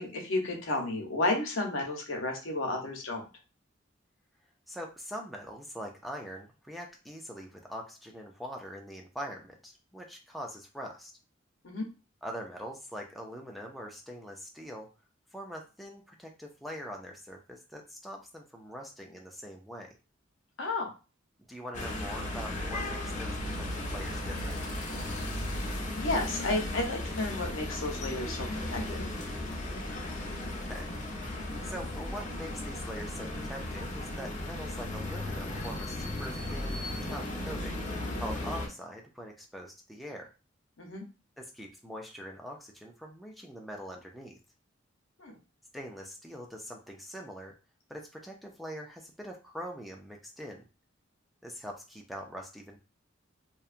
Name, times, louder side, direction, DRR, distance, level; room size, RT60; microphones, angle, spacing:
voice 1, 0.0-3.2 11.6-11.9 20.6-20.9 25.6-29.0 40.8-41.0 45.2-45.4, left 2 dB, 85° left, 2 dB, 0.7 m, -32 dB
voice 2, 4.7-11.1 12.2-14.9 15.3-20.0 21.5-24.6 30.5-30.9 31.3-40.3 41.4-44.4 45.7-47.5 47.9-50.6 51.4-52.8, equal, ahead, 0 dB, 0.4 m, -43 dB
sound 1, 21.7-38.7, left 1 dB, 40° left, 0.7 m, -36 dB
2.8 x 2.2 x 2.4 m, 0.32 s
head